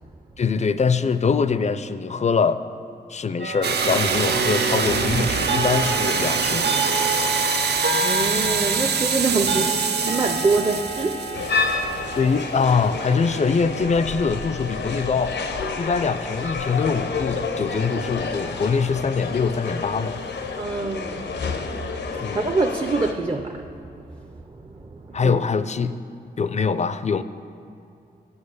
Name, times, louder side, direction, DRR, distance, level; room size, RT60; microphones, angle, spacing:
voice 1, 0.4-2.6 3.1-6.7 9.4-9.7 12.2-15.4 15.8-20.2 22.2-22.5 25.1-26.0 26.4-27.2, left 5 dB, 40° left, 13 dB, 0.4 m, -23 dB
sound 1, 3.4-20.6, right 2 dB, 90° right, 1.1 m, -32 dB
sound 2, 3.6-11.9, right 5 dB, 70° right, 0.6 m, -24 dB
voice 2, 8.0-11.3 20.6-21.2 22.1-23.7 24.0-25.4, right 3 dB, 30° right, 4 dB, 0.6 m, -25 dB
sound 3, 11.3-23.1, left 4 dB, 90° left, 0.8 m, -30 dB
9.8 x 5.8 x 7.9 m, 2.6 s
wide cardioid pair, 95°, 18 cm